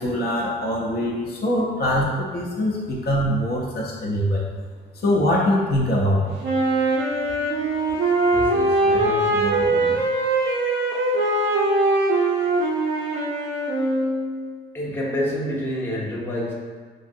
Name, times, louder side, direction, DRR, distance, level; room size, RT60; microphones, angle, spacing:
voice 1, 0.0-4.5 5.0-6.4, left 1 dB, 55° left, -3 dB, 0.6 m, -23 dB
Wind instrument woodwind instrument, 6.4-14.4, right 2 dB, 70° right, 0.6 m, -22 dB
voice 2, 8.3-10.1 14.7-16.5, left 1 dB, 10° left, -4 dB, 0.6 m, -28 dB
3.1 x 2.6 x 2.6 m, 1.5 s
cardioid pair, 90°, 20 cm